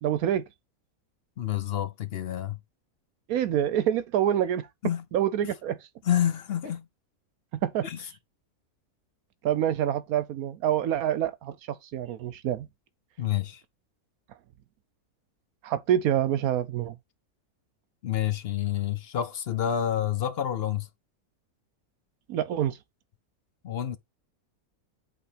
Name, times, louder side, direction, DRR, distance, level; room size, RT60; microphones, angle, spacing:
voice 1, 0.0-0.4 3.3-4.7 5.1-5.8 7.5-7.9 9.4-12.7 15.6-16.9 22.3-22.8, right 10 dB, 80° right, 1.1 m, -26 dB
voice 2, 1.4-2.6 4.8-5.0 6.0-6.9 7.8-8.0 13.2-13.6 18.0-20.9 23.6-24.0, left 10 dB, 55° left, 0.7 m, -28 dB
8.5 x 4.1 x 5.0 m
omnidirectional pair, 1.5 m